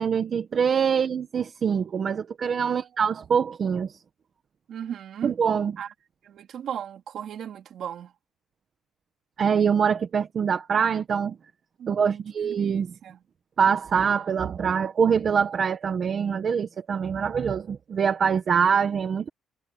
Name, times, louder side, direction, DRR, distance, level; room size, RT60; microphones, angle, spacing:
voice 1, 0.0-3.9 5.2-5.7 9.4-11.3 11.9-12.9 13.6-19.3, right 7 dB, 35° right, 1.2 m, -24 dB
voice 2, 4.7-5.3 5.8-5.9 6.2-8.1 11.8-13.2, right 9 dB, 50° right, 3.2 m, -37 dB
cardioid pair, 170°, 0 cm